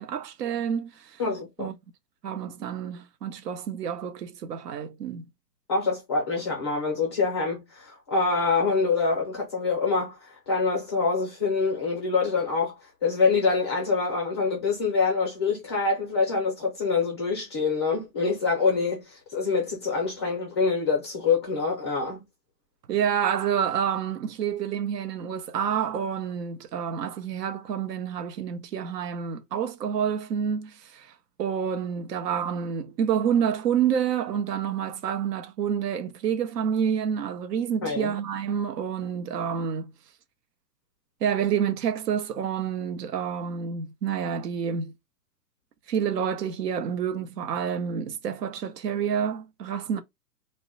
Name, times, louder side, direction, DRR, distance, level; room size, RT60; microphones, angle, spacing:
voice 1, 0.0-1.2 1.6-1.7 2.2-5.3 22.9-31.1 31.4-39.9 41.2-44.9 45.9-50.0, right 8 dB, 75° right, 0.7 m, -28 dB
voice 2, 1.2-1.7 5.7-22.2 37.8-38.1, left 4 dB, 20° left, 0.3 m, -25 dB
2.1 x 2.1 x 3.6 m
hypercardioid pair, 120°, 49 cm